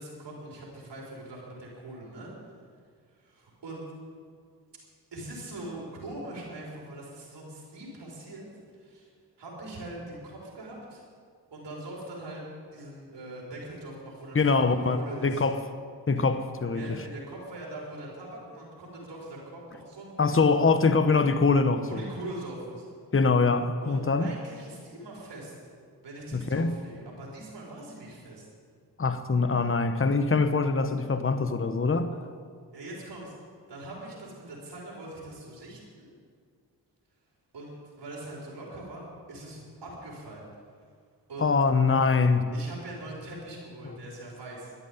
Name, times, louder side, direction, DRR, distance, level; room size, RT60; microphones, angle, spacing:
voice 1, 0.0-2.3 3.1-3.8 5.1-8.5 8.7-9.1 9.4-11.0 11.5-12.4 12.7-15.4 16.2-16.3 16.7-20.3 21.9-22.9 23.8-25.5 26.0-28.5 32.7-33.3 33.7-36.1 37.5-40.4 41.3-41.5 42.5-44.7, right 1 dB, 85° right, 4.7 m, -42 dB
voice 2, 14.3-15.6 16.1-17.0 20.2-22.1 23.1-24.3 26.3-26.7 29.0-32.1 41.4-42.5, left 4 dB, 30° left, 1.1 m, -24 dB
12.5 x 11.0 x 9.4 m
cardioid pair, 45°, 41 cm